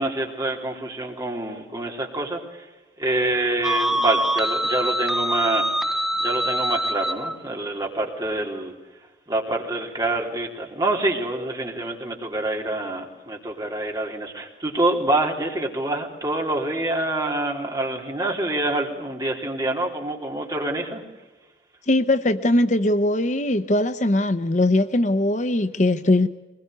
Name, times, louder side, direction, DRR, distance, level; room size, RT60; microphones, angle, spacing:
voice 1, 0.0-2.7 3.0-8.7 9.3-21.0, right 2 dB, 20° right, 0 dB, 3.6 m, -26 dB
sound 1, 3.6-7.4, equal, ahead, 0.7 m, -24 dB
voice 2, 21.9-26.3, left 1 dB, 40° left, 11 dB, 0.8 m, -20 dB
23.0 x 21.0 x 8.1 m, 1.1 s
head